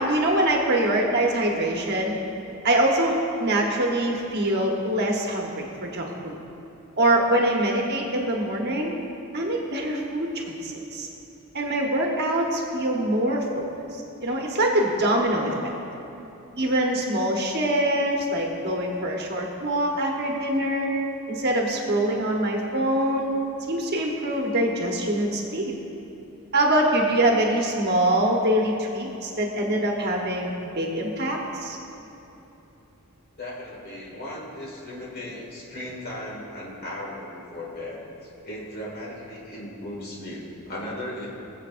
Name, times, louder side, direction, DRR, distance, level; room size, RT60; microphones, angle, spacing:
voice 1, 0.0-2.2 2.6-6.4 7.0-8.9 9.3-11.1 11.5-13.6 13.9-15.5 16.6-20.9 21.3-23.3 23.7-25.7 26.5-31.8, right 1 dB, 50° right, 0 dB, 1.1 m, -24 dB
voice 2, 33.4-41.3, left 1 dB, 45° left, -5 dB, 2.1 m, -37 dB
20.5 x 7.7 x 2.5 m, 3.0 s
head